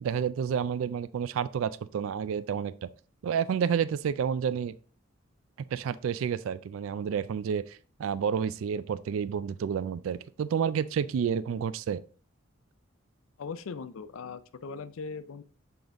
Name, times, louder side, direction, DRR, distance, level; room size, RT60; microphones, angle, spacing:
voice 1, 0.0-2.9 3.2-4.7 5.7-12.0, right 7 dB, 70° right, 0.3 m, -30 dB
voice 2, 13.4-15.4, left 5 dB, 75° left, 0.4 m, -39 dB
6.9 x 3.9 x 3.5 m
head